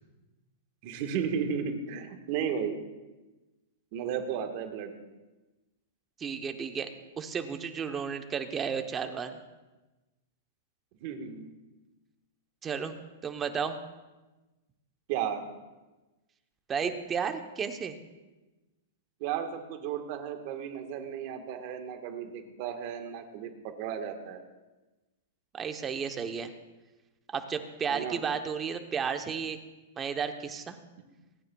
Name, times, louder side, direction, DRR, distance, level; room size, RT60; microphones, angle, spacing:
voice 1, 0.8-2.8 3.9-4.9 11.0-11.5 15.1-15.5 19.2-24.4 27.9-28.2, right 8 dB, 45° right, 5 dB, 1.4 m, -34 dB
voice 2, 6.2-6.9 7.2-9.4 12.6-13.0 13.2-13.8 16.7-18.0 25.5-26.5 27.3-29.6 30.0-30.8, right 6 dB, 15° right, 7 dB, 0.8 m, -33 dB
26.0 x 9.6 x 2.3 m, 1.1 s
hypercardioid pair, 155°, 0 cm